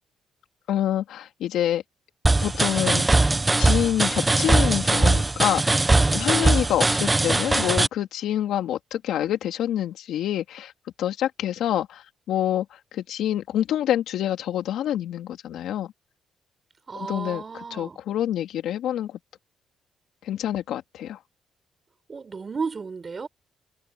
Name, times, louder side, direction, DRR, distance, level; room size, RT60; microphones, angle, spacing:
voice 1, 0.7-1.8 2.4-3.1 3.6-10.7 11.0-15.9 16.9-17.4 17.7-19.1 20.2-21.2, left 11 dB, 80° left, 3.3 m, -27 dB
sound 1, 2.2-7.9, right 2 dB, 15° right, 0.7 m, -20 dB
voice 2, 16.9-18.0 22.1-23.3, right 5 dB, 35° right, 4.5 m, -33 dB
cardioid pair, 90°, 0 cm